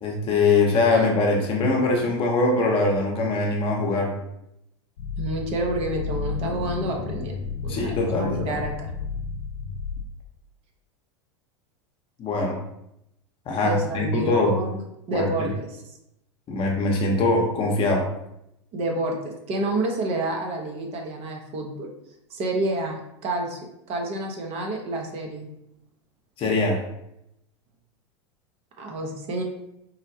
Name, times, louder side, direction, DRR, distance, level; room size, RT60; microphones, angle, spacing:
voice 1, 0.0-4.2 7.7-8.6 12.2-12.6 13.5-14.6 15.1-15.5 16.5-18.1 26.4-26.8, left 3 dB, 35° left, 0 dB, 0.8 m, -22 dB
sound 1, 5.0-10.0, left 5 dB, 75° left, 0.4 m, -32 dB
voice 2, 5.2-7.4 7.6-8.9 13.6-14.8 15.1-15.8 18.7-21.9 22.3-23.0 23.2-23.6 23.9-25.5 28.8-29.4, right 2 dB, 40° right, 1 dB, 0.8 m, -29 dB
3.9 x 2.1 x 2.7 m, 0.82 s
hypercardioid pair, 95°, 15 cm